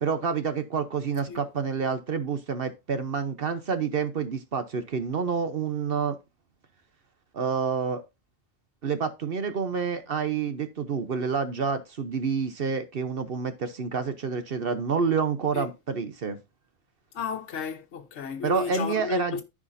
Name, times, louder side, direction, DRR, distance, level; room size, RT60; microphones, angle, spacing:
voice 1, 0.0-6.2 7.3-8.0 8.8-16.4 18.4-19.4, right 5 dB, 50° right, 0.9 m, -28 dB
voice 2, 17.1-19.4, left 6 dB, 65° left, 1.2 m, -33 dB
14.0 x 5.0 x 2.6 m
omnidirectional pair, 1.3 m